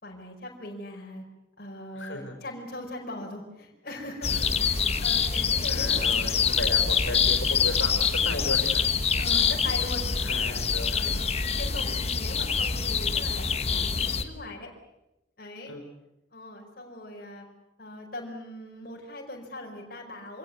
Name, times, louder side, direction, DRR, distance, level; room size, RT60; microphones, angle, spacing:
voice 1, 0.0-1.2 1.6-6.4 9.2-10.1 10.9-11.2 11.5-14.7 15.4-15.8 16.3-17.5 17.8-20.4, left 1 dB, 50° left, -1 dB, 5.1 m, -40 dB
voice 2, 1.9-2.3 4.3-4.7 5.7-8.9 10.2-11.1 15.7-15.8, left 2 dB, 75° left, 3 dB, 5.1 m, -36 dB
sound 1, 4.2-14.2, left 6 dB, 30° left, 1.3 m, -25 dB
26.5 x 17.5 x 9.4 m, 0.93 s
head